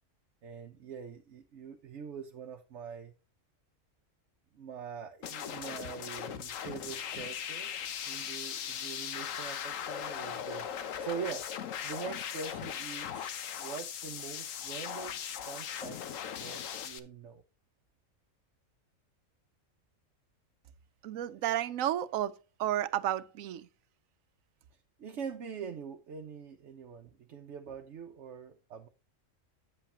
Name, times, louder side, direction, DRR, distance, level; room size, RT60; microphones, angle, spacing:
voice 1, 0.4-3.1 4.5-10.7 11.0-15.2 15.5-16.0 16.4-17.4 25.0-28.9, right 6 dB, 65° right, 1.0 m, -43 dB
sound 1, 5.2-17.0, left 9 dB, 75° left, 1.2 m, -39 dB
voice 2, 21.0-23.7, right 12 dB, 85° right, 1.0 m, -32 dB
9.1 x 8.1 x 2.8 m
omnidirectional pair, 1.4 m